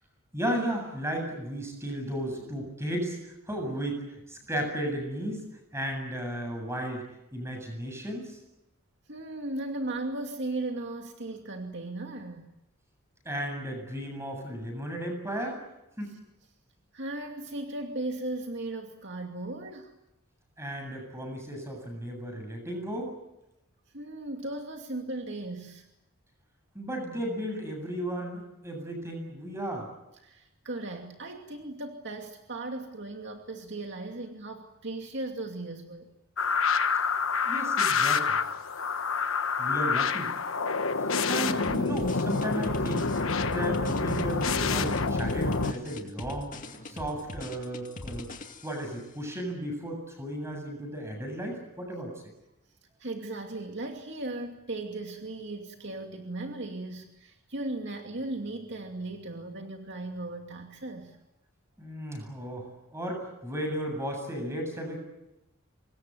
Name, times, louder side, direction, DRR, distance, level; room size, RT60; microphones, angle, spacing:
voice 1, 0.3-5.4 5.7-7.0 7.3-8.4 13.2-15.6 16.0-16.1 20.6-23.1 26.7-29.9 37.4-38.4 39.6-40.3 41.3-43.1 43.5-46.5 46.8-48.3 48.6-52.1 61.8-65.1, equal, 10° right, 4 dB, 8.0 m, -34 dB
voice 2, 9.1-12.5 16.1-16.2 16.9-19.9 23.9-25.9 30.2-36.1 53.0-61.2, right 2 dB, 55° right, 3 dB, 2.5 m, -37 dB
sound 1, 36.4-45.7, left 4 dB, 70° left, 1.3 m, -27 dB
sound 2, 41.6-48.9, left 1 dB, 35° left, 2.4 m, -41 dB
26.0 x 21.5 x 9.3 m, 0.90 s
head